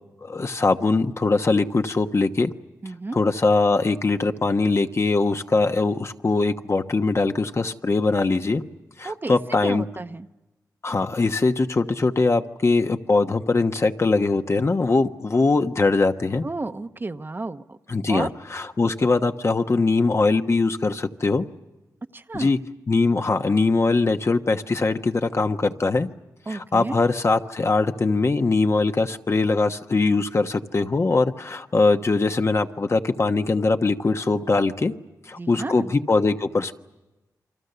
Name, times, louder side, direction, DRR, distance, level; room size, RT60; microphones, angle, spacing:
voice 1, 0.2-2.5 3.1-8.6 9.0-9.8 10.8-16.4 17.9-21.5 22.3-22.6 22.9-26.1 26.5-34.9 35.3-36.7, left 3 dB, 45° left, 6 dB, 1.2 m, -21 dB
voice 2, 2.8-3.2 9.0-9.4 9.6-10.3 16.4-17.8 18.1-18.3 22.1-22.5 26.5-27.0 35.4-35.9, right 2 dB, 30° right, 9 dB, 0.9 m, -32 dB
28.5 x 24.5 x 6.9 m, 1.1 s
cardioid pair, 75°, 7 cm